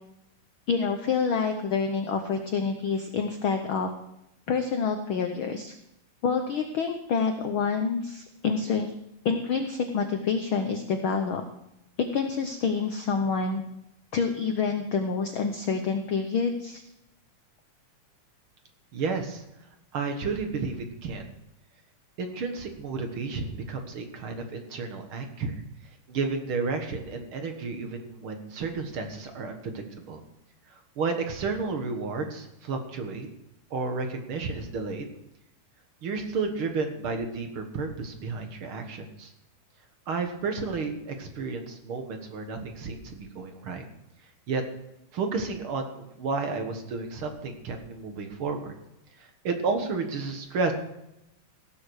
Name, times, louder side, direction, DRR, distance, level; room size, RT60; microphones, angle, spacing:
voice 1, 0.7-3.9 4.5-5.7 6.2-8.9 9.2-11.4 12.1-13.6 14.1-16.8, left 5 dB, 85° left, 6 dB, 1.1 m, -27 dB
voice 2, 18.9-19.4 19.9-21.2 22.2-25.5 26.1-30.2 30.7-33.3 33.7-35.1 36.0-39.3 40.1-43.8 44.5-44.6 45.1-48.7 49.2-50.7, right 4 dB, 50° right, 5 dB, 1.9 m, -32 dB
17.0 x 7.5 x 6.4 m, 0.86 s
omnidirectional pair, 3.6 m